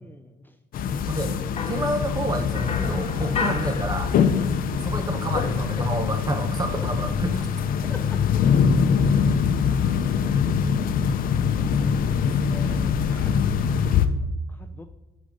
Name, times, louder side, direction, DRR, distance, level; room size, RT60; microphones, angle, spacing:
sound 1, 0.7-14.1, left 7 dB, 60° left, 0.7 m, -23 dB
sound 2, 1.6-4.6 4.8-6.3, left 5 dB, 35° left, 1.1 m, -34 dB
voice 1, 1.6-4.1 4.8-7.5 9.8-10.0 12.4-13.0, right 1 dB, 20° right, 7 dB, 1.1 m, -29 dB
voice 2, 7.8-8.2 11.1-11.7 12.6-13.5 14.6-14.8, left 2 dB, 10° left, 6 dB, 0.5 m, -42 dB
9.7 x 5.4 x 5.1 m, 1.1 s
cardioid pair, 110°, 17 cm